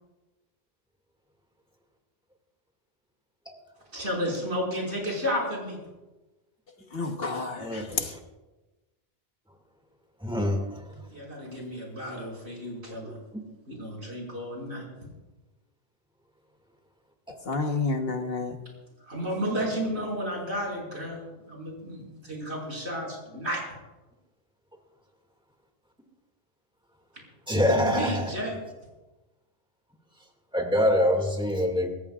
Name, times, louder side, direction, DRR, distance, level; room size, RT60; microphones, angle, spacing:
voice 1, 3.9-5.8 11.1-13.2 13.7-14.8 19.0-23.6 27.5-28.6, equal, 75° right, 5.8 m, -32 dB
voice 2, 6.9-8.1 17.4-18.6, left 3 dB, 60° left, 1.5 m, -30 dB
voice 3, 7.6-8.2 10.2-11.0 27.5-28.2 30.5-31.9, left 1 dB, 5° right, 2.1 m, -25 dB
25.5 x 14.5 x 2.5 m
omnidirectional pair, 1.2 m